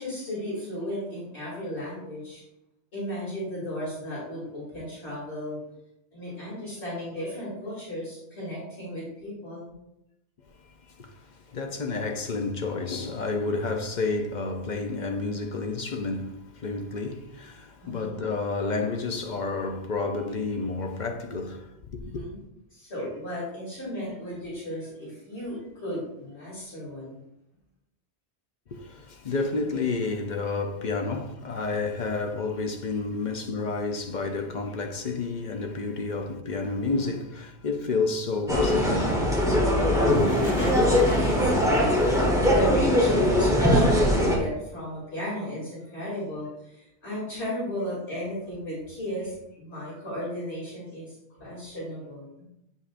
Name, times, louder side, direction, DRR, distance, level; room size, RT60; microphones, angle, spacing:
voice 1, 0.0-2.4 2.9-5.6 6.1-9.7 17.8-18.2 22.0-22.4 22.7-27.2 40.4-41.9 42.4-52.3, equal, 65° left, 3.1 m, -35 dB
voice 2, 10.9-22.2 28.7-39.4 39.7-40.2, left 3 dB, 45° left, 0.7 m, -30 dB
sound 1, 38.5-44.4, equal, 5° right, 1.2 m, -21 dB
Toilet flush, 39.7-42.8, left 1 dB, 25° left, 1.0 m, -34 dB
8.2 x 5.4 x 2.5 m
omnidirectional pair, 1.2 m